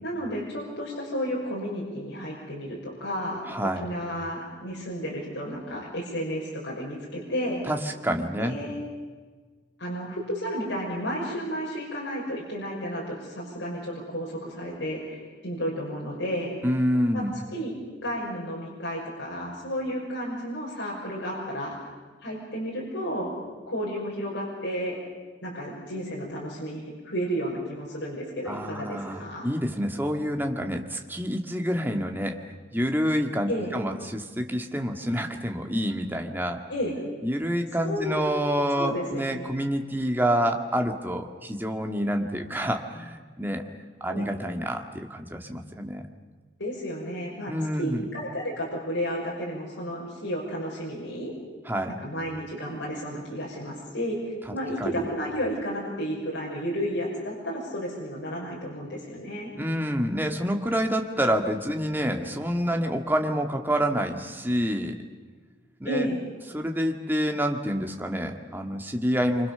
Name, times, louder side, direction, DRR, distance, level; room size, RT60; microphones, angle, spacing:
voice 1, 0.0-3.4 3.8-7.6 8.4-8.8 9.8-16.5 17.1-17.2 17.5-17.7 18.0-21.8 22.2-23.3 23.7-25.0 25.4-29.5 33.5-33.8 36.7-37.0 37.8-38.2 38.7-39.5 44.1-44.3 46.6-47.5 47.8-51.3 52.0-59.5 65.8-66.2, equal, 75° left, -4 dB, 5.9 m, -32 dB
voice 2, 3.5-3.8 7.7-8.6 16.6-17.3 28.5-32.4 32.7-36.6 37.2-43.6 44.0-46.1 47.5-48.0 51.7-52.0 54.8-55.0 59.5-65.0 65.8-66.1 66.5-69.5, equal, 10° right, 3 dB, 1.9 m, -27 dB
27.0 x 25.5 x 6.9 m, 1.4 s
head